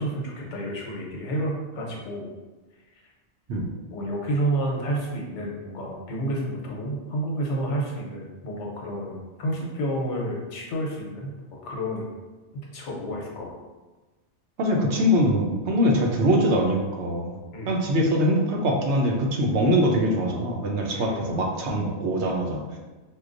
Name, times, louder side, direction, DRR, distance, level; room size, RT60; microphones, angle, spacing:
voice 1, 0.0-2.3 3.9-12.1 12.7-13.5 17.5-17.7 20.9-21.2, right 1 dB, 85° left, -1 dB, 1.1 m, -30 dB
voice 2, 14.6-17.4 17.6-22.8, equal, 75° right, 0 dB, 0.9 m, -23 dB
4.5 x 2.3 x 2.5 m, 1.2 s
omnidirectional pair, 1.2 m